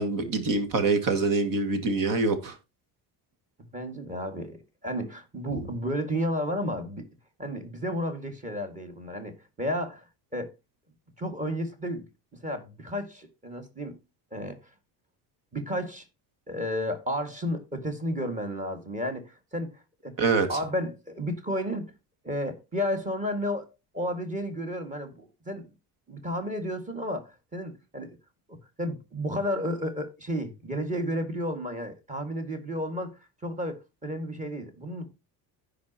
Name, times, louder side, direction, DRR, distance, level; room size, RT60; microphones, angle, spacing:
voice 1, 0.0-2.5 20.2-20.5, right 3 dB, 50° right, 2.0 m, -25 dB
voice 2, 3.7-7.1 7.4-10.5 11.2-12.1 12.4-14.0 14.3-14.6 15.5-16.0 16.5-19.7 20.0-20.2 20.5-21.9 22.2-23.7 23.9-25.7 26.1-28.2 28.5-35.1, equal, 20° right, 1.9 m, -32 dB
15.5 x 5.2 x 2.8 m
cardioid pair, 145°, 41 cm